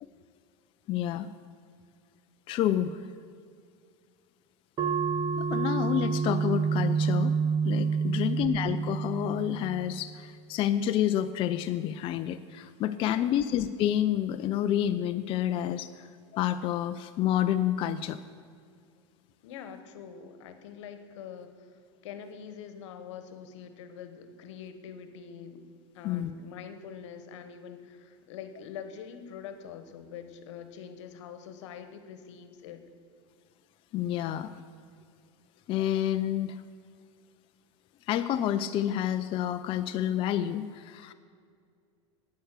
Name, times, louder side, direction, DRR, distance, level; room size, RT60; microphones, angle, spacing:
voice 1, 0.9-1.3 2.5-3.0 5.3-7.4 7.6-16.1 16.3-18.2 26.0-26.3 33.9-34.5 35.7-36.6 38.1-41.1, left 11 dB, 35° left, 10 dB, 0.4 m, -29 dB
sound 1, 4.8-9.9, right 6 dB, 30° right, 0.6 m, -28 dB
voice 2, 13.0-13.4 19.4-25.6 25.9-32.8, left 7 dB, 80° left, 9 dB, 1.1 m, -45 dB
9.3 x 7.8 x 6.6 m, 2.2 s
supercardioid pair, 125°, 15 cm